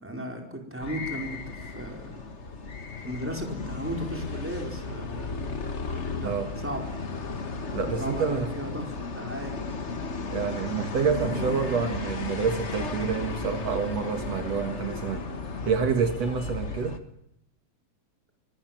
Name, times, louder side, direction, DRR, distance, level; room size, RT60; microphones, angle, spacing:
voice 1, 0.0-2.3 3.0-5.3 6.2-6.9 8.0-8.8 9.2-9.7 11.3-11.5, right 1 dB, 5° right, 2 dB, 4.6 m, -36 dB
sound 1, 0.8-17.0, left 4 dB, 35° left, 1.3 m, -34 dB
voice 2, 7.7-8.5 10.3-15.3 15.6-17.0, right 6 dB, 65° right, 7 dB, 2.7 m, -28 dB
24.5 x 19.0 x 9.2 m, 0.80 s
omnidirectional pair, 3.3 m